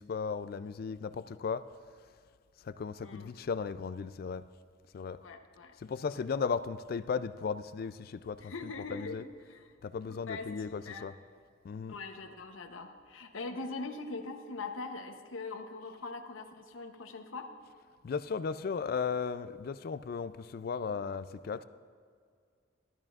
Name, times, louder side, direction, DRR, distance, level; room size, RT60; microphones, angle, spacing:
voice 1, 0.0-1.6 2.6-4.4 4.9-5.2 5.8-9.2 9.8-11.2 11.6-11.9 18.0-21.6, left 5 dB, 50° left, 13 dB, 0.3 m, -36 dB
voice 2, 5.2-5.8 8.4-9.7 10.3-11.1 11.9-17.5, left 3 dB, 90° left, 5 dB, 0.8 m, -42 dB
14.5 x 12.5 x 2.4 m, 2.1 s
head